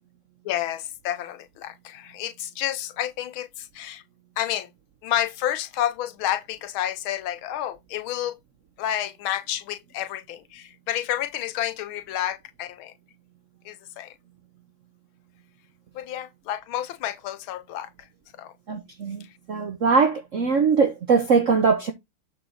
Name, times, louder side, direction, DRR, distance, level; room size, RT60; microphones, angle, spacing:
voice 1, 0.4-4.0 4.4-4.7 5.0-8.4 8.8-12.9 13.6-14.1 15.9-17.9 18.4-18.5, left 12 dB, 75° left, 1.5 m, -30 dB
voice 2, 18.7-21.9, right 5 dB, 65° right, 0.8 m, -21 dB
8.0 x 3.9 x 4.3 m
omnidirectional pair, 2.4 m